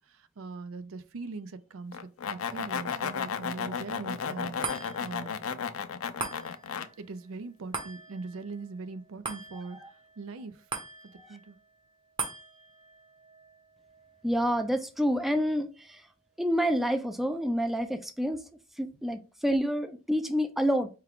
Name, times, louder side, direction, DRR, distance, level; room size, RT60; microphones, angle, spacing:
voice 1, 0.1-2.0 2.3-5.4 7.0-9.8 10.2-10.6 11.3-11.6, right 3 dB, 70° right, 0.4 m, -41 dB
sound 1, 1.9-6.9, left 6 dB, 85° left, 0.4 m, -34 dB
sound 2, 4.6-17.2 17.7-17.8, right 3 dB, 25° right, 0.9 m, -43 dB
voice 2, 14.2-16.0 16.4-18.4 18.8-20.9, equal, ahead, 0.3 m, -28 dB
4.6 x 2.3 x 3.5 m
head